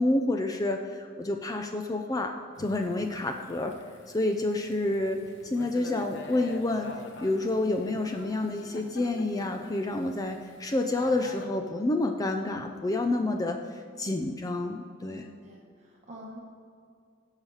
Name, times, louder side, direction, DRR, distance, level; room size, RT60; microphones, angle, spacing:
voice 1, 0.0-2.3 2.6-3.7 4.1-6.9 7.2-15.3, left 2 dB, 20° left, 4 dB, 0.5 m, -29 dB
Thunder / Rain, 2.5-11.5, left 2 dB, 65° left, 0.9 m, -46 dB
voice 2, 15.1-16.4, equal, 35° right, -2 dB, 1.1 m, -47 dB
16.5 x 5.7 x 4.8 m, 2.3 s
head